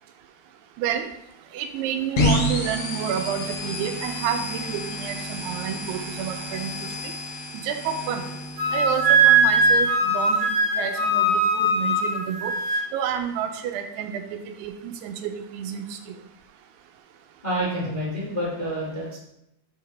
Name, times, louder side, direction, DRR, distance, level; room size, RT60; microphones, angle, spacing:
voice 1, 1.5-7.1 7.5-8.2 8.7-12.5 12.9-16.0, right 8 dB, 85° right, 7 dB, 2.5 m, -30 dB
sound 1, 2.2-9.8, left 1 dB, 60° left, 2.1 m, -30 dB
Wind instrument woodwind instrument, 8.6-12.9, right 2 dB, 50° right, 2.9 m, -20 dB
voice 2, 17.4-19.2, equal, 25° left, -6 dB, 1.0 m, -28 dB
7.1 x 5.7 x 3.2 m, 0.81 s
omnidirectional pair, 4.7 m